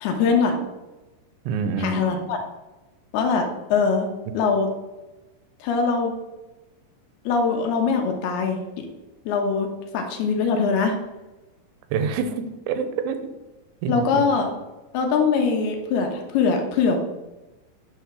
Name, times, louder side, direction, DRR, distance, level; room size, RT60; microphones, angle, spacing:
voice 1, 0.0-0.6 1.8-2.4 3.1-4.1 4.3-4.7 5.6-6.1 7.3-8.9 9.3-9.7 9.9-11.0 13.9-14.5 14.9-17.0, left 5 dB, 75° left, 3 dB, 2.8 m, -22 dB
voice 2, 1.5-2.1 11.9-13.2 13.8-14.2, right 6 dB, 90° right, 9 dB, 3.0 m, -26 dB
9.6 x 3.5 x 6.2 m, 1.1 s
omnidirectional pair, 4.9 m